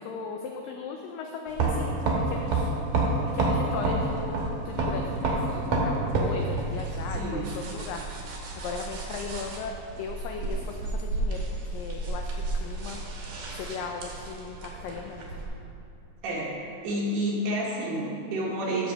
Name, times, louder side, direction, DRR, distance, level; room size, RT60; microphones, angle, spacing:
voice 1, 0.0-2.7 3.3-13.0 13.5-15.3, left 5 dB, 90° left, 3 dB, 1.9 m, -37 dB
sound 1, 1.5-15.5, right 2 dB, 65° right, 2.6 m, -30 dB
voice 2, 7.1-7.5 16.2-16.6 16.8-18.9, right 1 dB, 80° right, -4 dB, 3.6 m, -29 dB
14.5 x 6.4 x 3.5 m, 2.6 s
omnidirectional pair, 4.6 m